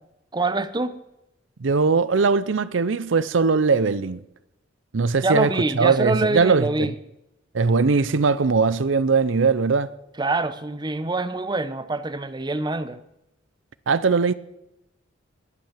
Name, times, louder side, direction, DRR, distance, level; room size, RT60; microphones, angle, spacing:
voice 1, 0.3-0.9 5.2-6.9 10.2-13.0, right 2 dB, 25° right, 0.8 m, -25 dB
voice 2, 1.6-4.2 4.9-6.9 7.5-9.9 13.9-14.3, right 4 dB, 75° right, 0.6 m, -20 dB
20.5 x 8.7 x 7.4 m
head